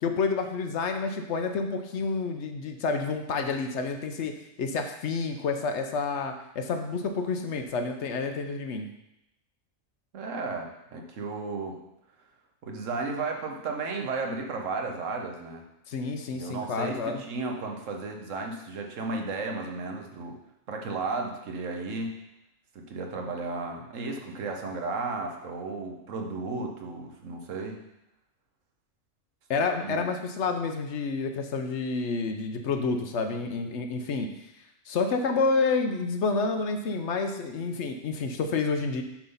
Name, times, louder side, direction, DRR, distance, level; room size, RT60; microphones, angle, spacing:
voice 1, 0.0-4.3 4.6-8.9 15.9-17.2 29.5-34.3 34.9-39.0, left 4 dB, 65° left, 5 dB, 0.9 m, -29 dB
voice 2, 10.1-11.8 12.6-15.6 16.3-20.4 20.7-22.1 22.7-27.8 29.8-30.1, right 3 dB, 75° right, 2 dB, 1.2 m, -34 dB
7.3 x 3.7 x 5.4 m, 0.87 s
omnidirectional pair, 1.4 m